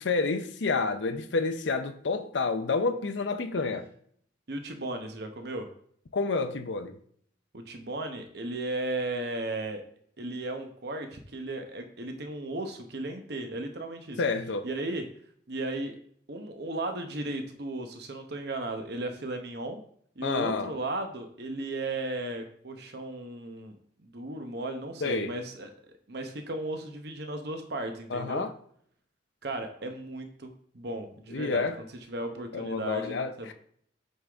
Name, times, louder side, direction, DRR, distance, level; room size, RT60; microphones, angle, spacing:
voice 1, 0.0-3.9 6.1-7.0 14.2-14.6 20.2-20.7 25.0-25.3 28.1-28.5 31.3-31.8 32.5-33.5, left 4 dB, 70° left, 0.6 m, -29 dB
voice 2, 4.5-5.7 7.5-9.8 10.2-14.2 14.6-15.1 15.5-16.0 16.3-19.8 20.2-25.7 26.1-28.4 29.4-31.7 32.1-33.5, right 2 dB, 55° right, 0.9 m, -35 dB
7.9 x 3.9 x 3.5 m
head